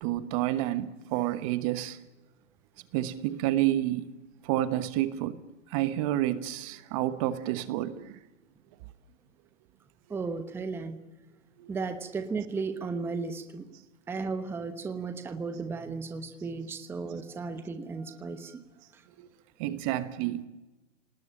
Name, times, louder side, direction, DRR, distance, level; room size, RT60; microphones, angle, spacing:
voice 1, 0.0-2.0 2.9-4.1 4.4-5.4 5.7-8.2 11.6-11.7 19.2-19.3 19.6-20.5, right 14 dB, 25° right, 1.2 m, -29 dB
voice 2, 10.1-11.0 11.7-13.7 14.1-18.6 18.9-19.0, right 4 dB, 5° right, 1.1 m, -35 dB
29.0 x 19.5 x 9.0 m
hypercardioid pair, 150°, 37 cm